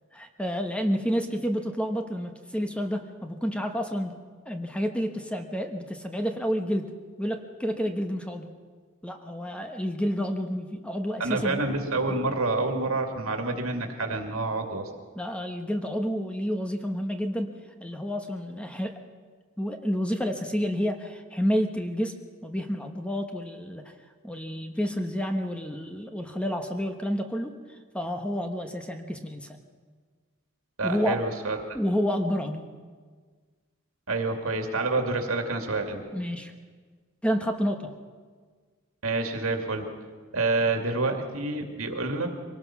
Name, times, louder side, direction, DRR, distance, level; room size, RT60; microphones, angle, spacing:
voice 1, 0.1-4.2 4.5-6.9 7.2-8.5 9.0-11.6 15.1-17.5 17.8-19.0 19.6-22.1 22.4-23.9 24.2-27.6 27.9-29.6 30.8-31.2 31.7-32.6 36.1-36.5 37.2-37.9, equal, 5° left, 5 dB, 1.1 m, -29 dB
voice 2, 11.2-14.9 30.8-31.8 34.1-36.0 39.0-39.9 40.3-42.3, right 3 dB, 85° right, 4 dB, 2.5 m, -28 dB
24.0 x 18.5 x 6.1 m, 1.5 s
head